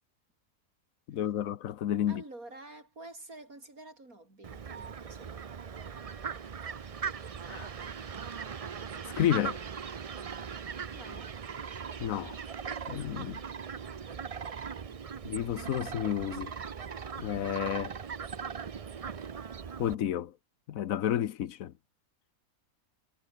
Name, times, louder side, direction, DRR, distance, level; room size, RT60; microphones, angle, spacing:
voice 1, 1.1-2.2 7.5-7.7 9.2-9.6 12.0-12.4 12.9-13.4 15.2-16.5 17.2-18.0 19.8-20.3 20.7-21.7, left 11 dB, 70° left, 1.2 m, -31 dB
voice 2, 2.1-5.4 10.9-11.4, right 2 dB, 75° right, 6.7 m, -49 dB
Fowl, 4.4-19.9, right 6 dB, 50° right, 0.4 m, -39 dB
omnidirectional pair, 1.5 m